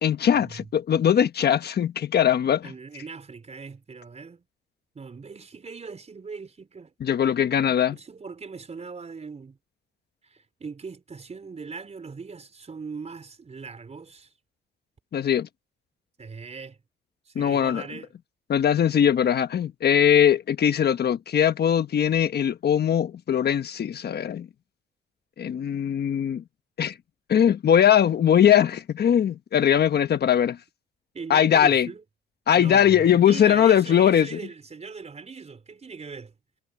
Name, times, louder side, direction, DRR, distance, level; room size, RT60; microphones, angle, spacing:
voice 1, 0.0-2.7 7.0-8.0 15.1-15.5 17.3-17.8 18.5-24.5 25.4-26.4 26.8-26.9 27.3-30.6 31.3-31.9 32.5-34.4, left 9 dB, 55° left, 1.3 m, -20 dB
voice 2, 2.6-4.4 4.9-6.9 7.9-9.6 10.2-14.3 16.2-16.8 17.2-18.1 31.1-32.0 32.5-36.3, right 5 dB, 35° right, 4.5 m, -40 dB
cardioid pair, 90°, 20 cm